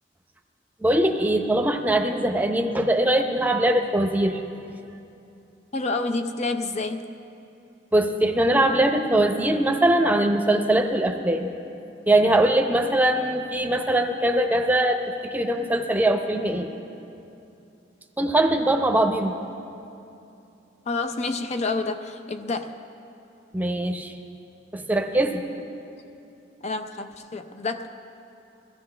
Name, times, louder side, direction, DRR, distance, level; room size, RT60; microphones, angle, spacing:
voice 1, 0.8-4.4 7.9-11.5 12.1-16.7 18.2-19.3 23.5-24.1 24.7-25.4, right 1 dB, 10° right, 4 dB, 0.8 m, -21 dB
voice 2, 5.7-7.1 20.9-22.8 26.6-27.9, left 3 dB, 40° left, 7 dB, 0.6 m, -28 dB
22.0 x 15.0 x 3.3 m, 2.7 s
head